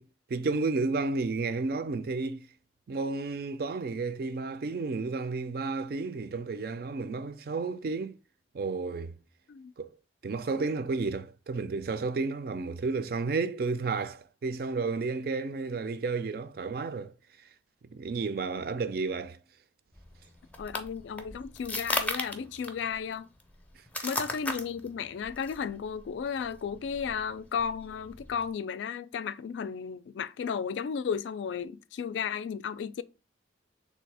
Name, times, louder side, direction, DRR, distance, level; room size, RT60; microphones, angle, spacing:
voice 1, 0.3-2.5 2.9-8.1 8.5-9.1 9.8-9.9 10.2-17.1 17.9-19.4 24.0-24.1, right 4 dB, 55° right, 0.4 m, -32 dB
sound 1, 19.9-28.5, left 1 dB, 10° left, 0.5 m, -37 dB
voice 2, 20.6-23.3 24.0-33.0, left 6 dB, 85° left, 0.3 m, -34 dB
3.4 x 2.7 x 4.6 m
head